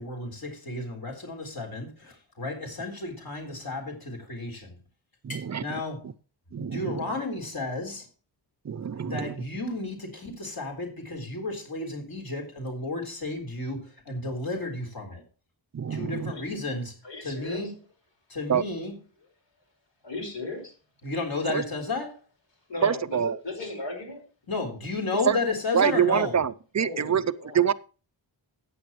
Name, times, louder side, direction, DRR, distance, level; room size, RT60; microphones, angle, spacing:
voice 1, 0.0-4.8 5.3-6.0 6.6-8.1 9.0-15.2 15.9-16.9 17.2-17.7 18.3-18.9 21.0-22.2 24.5-26.4, left 3 dB, 50° left, 3.9 m, -33 dB
voice 2, 5.2-6.1 6.5-7.0 8.6-9.3 15.7-16.3 18.5-18.6 21.5-21.6 22.8-23.4 25.3-25.4 25.7-27.7, right 8 dB, 40° right, 0.5 m, -26 dB
voice 3, 17.0-17.6 20.0-20.7 22.7-24.2 26.8-27.7, left 2 dB, 65° left, 4.9 m, -36 dB
14.0 x 9.3 x 3.0 m
wide cardioid pair, 155°, 46 cm